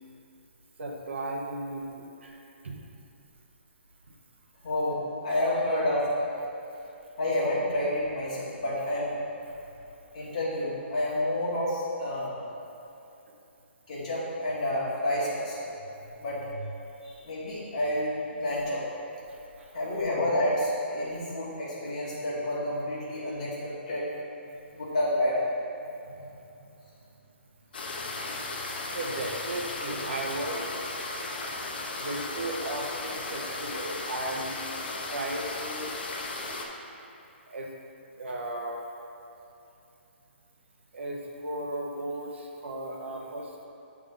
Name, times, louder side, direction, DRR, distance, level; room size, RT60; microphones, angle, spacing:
voice 1, 0.8-2.4 2.6-2.8 9.6-9.7 13.3-13.4 19.3-19.8 21.0-21.2 26.0-26.3 26.6-26.7 28.9-31.0 31.6-34.7 35.1-35.9 37.5-37.7 38.2-38.8 40.9-43.7, right 1 dB, 70° right, 0 dB, 0.9 m, -36 dB
voice 2, 4.6-6.3 7.2-9.1 10.1-12.4 13.9-15.7 16.2-16.7 17.0-18.8 19.7-24.1 24.7-25.4, left 1 dB, 30° left, -8 dB, 1.4 m, -29 dB
sound 1, 27.7-36.7, left 2 dB, 50° left, 0.7 m, -35 dB
8.4 x 3.5 x 3.7 m, 2.8 s
hypercardioid pair, 180°, 7 cm